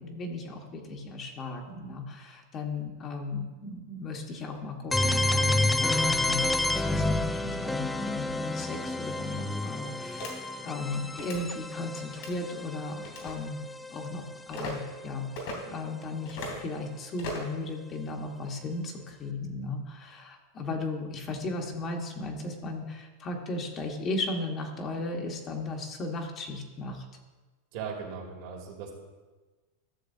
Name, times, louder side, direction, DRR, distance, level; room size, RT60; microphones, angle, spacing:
voice 1, 0.0-13.6 13.9-15.3 15.7-27.1, left 2 dB, 35° left, 2 dB, 1.3 m, -36 dB
sound 1, 4.9-14.6, left 2 dB, 10° left, 0.4 m, -29 dB
sound 2, 10.2-10.3 11.1-11.4 12.1-12.4 13.0-13.3 14.5-14.7 15.4-15.6 16.3-16.6 17.2-17.5, left 1 dB, 65° left, 3.0 m, -37 dB
voice 2, 27.7-28.9, right 6 dB, 65° right, 0 dB, 2.3 m, -38 dB
12.5 x 6.7 x 2.7 m, 1.3 s
hypercardioid pair, 115°, 0 cm